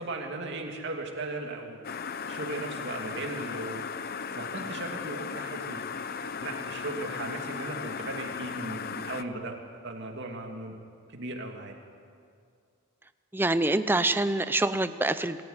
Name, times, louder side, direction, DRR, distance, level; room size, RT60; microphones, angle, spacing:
voice 1, 0.0-1.8 2.3-3.8 4.3-5.9 6.1-9.6 9.8-10.7 11.1-11.8, right 2 dB, 50° right, 2 dB, 2.7 m, -37 dB
sound 1, 1.8-9.2, left 6 dB, 45° left, 0.7 m, -36 dB
voice 2, 13.3-15.4, right 2 dB, 10° right, 12 dB, 0.6 m, -25 dB
26.0 x 14.0 x 9.7 m, 2.3 s
head